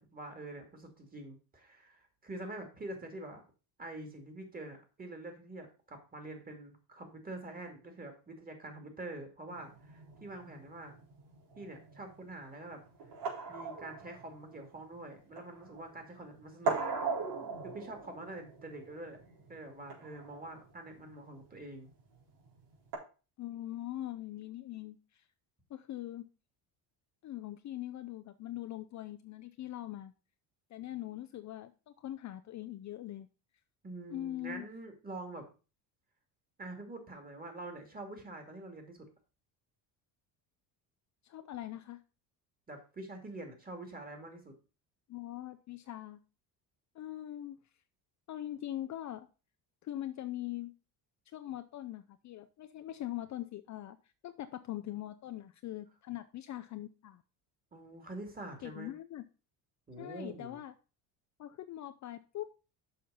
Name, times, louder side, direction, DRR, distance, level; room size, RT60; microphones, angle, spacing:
voice 1, 0.0-3.4 3.8-10.9 11.5-12.8 13.5-16.8 17.6-19.2 19.5-21.9 33.8-35.4 36.6-39.0 42.7-44.6 57.7-58.9 59.9-60.6, right 2 dB, 20° right, 5 dB, 2.4 m, -46 dB
sound 1, 9.5-23.0, right 4 dB, 85° right, 4.1 m, -41 dB
voice 2, 23.4-25.2 25.7-26.3 27.2-30.1 30.7-31.7 32.0-33.3 34.1-34.7 41.2-42.0 45.1-46.2 46.9-47.6 48.3-49.3 49.8-50.7 51.3-54.0 54.2-57.2 58.6-59.3 60.0-60.7 61.4-62.5, left 13 dB, 40° left, 9 dB, 0.5 m, -42 dB
6.7 x 5.7 x 5.4 m, 0.33 s
cardioid pair, 125°, 43 cm